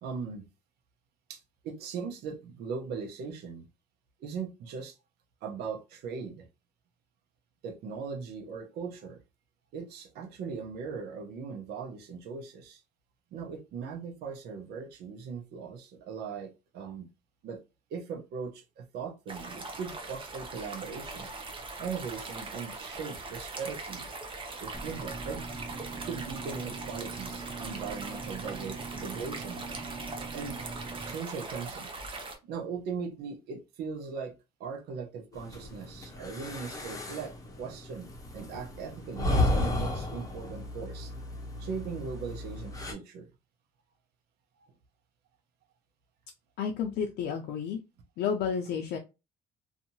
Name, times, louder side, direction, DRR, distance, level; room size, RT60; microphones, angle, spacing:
voice 1, 0.0-0.4 1.3-3.7 4.2-4.9 5.4-6.5 7.6-9.2 9.7-12.8 13.3-17.1 17.4-17.6 17.9-21.3 21.8-24.1 24.6-25.4 25.9-29.6 30.3-30.6 31.1-31.9 32.4-34.3 34.6-41.1 41.6-43.3, right 5 dB, 75° right, 0.7 m, -39 dB
sound 1, 19.3-32.4, right 3 dB, 30° right, 0.7 m, -41 dB
sound 2, 24.7-31.1, right 4 dB, 15° right, 1.4 m, -42 dB
sound 3, 35.3-42.9, left 2 dB, 20° left, 0.8 m, -33 dB
voice 2, 46.6-47.8 48.2-49.0, left 7 dB, 75° left, 0.5 m, -31 dB
2.7 x 2.5 x 2.7 m
cardioid pair, 110°, 17 cm